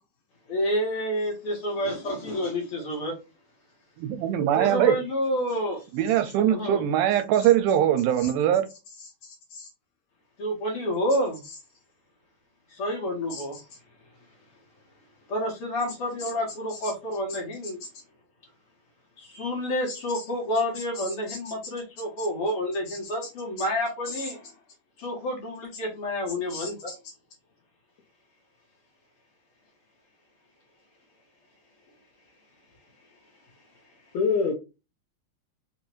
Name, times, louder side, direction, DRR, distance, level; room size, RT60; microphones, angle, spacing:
voice 1, 0.5-3.2 4.6-5.8 6.5-6.8 10.4-11.4 12.7-13.7 15.3-17.8 19.2-24.4 25.0-26.9, equal, 55° left, 1.9 m, -29 dB
voice 2, 4.0-5.0 5.9-8.7, right 11 dB, 80° right, 2.1 m, -22 dB
voice 3, 9.0-9.7 13.3-13.5 16.8-16.9 17.8-17.9 19.9-20.2 20.8-21.4 22.2-22.3 22.9-23.1 23.6-23.7 24.1-24.3 26.5-27.0 34.1-34.6, left 4 dB, 75° left, 1.8 m, -32 dB
5.1 x 2.6 x 2.9 m
omnidirectional pair, 3.7 m